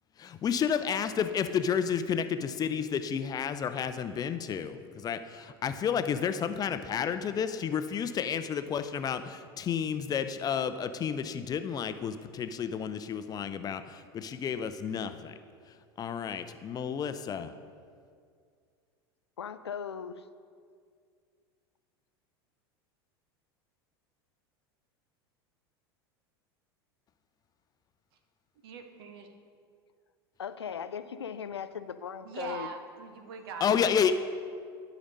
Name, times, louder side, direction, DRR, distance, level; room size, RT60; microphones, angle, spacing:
voice 1, 0.2-15.3 16.0-17.5 33.6-34.1, left 7 dB, 30° left, 10 dB, 0.5 m, -31 dB
voice 2, 19.4-20.2 30.4-32.7, left 7 dB, 90° left, 12 dB, 0.4 m, -38 dB
voice 3, 28.6-29.3 32.2-34.1, right 5 dB, 65° right, 6 dB, 1.0 m, -42 dB
12.0 x 5.1 x 5.3 m, 2.2 s
hypercardioid pair, 85°, 13 cm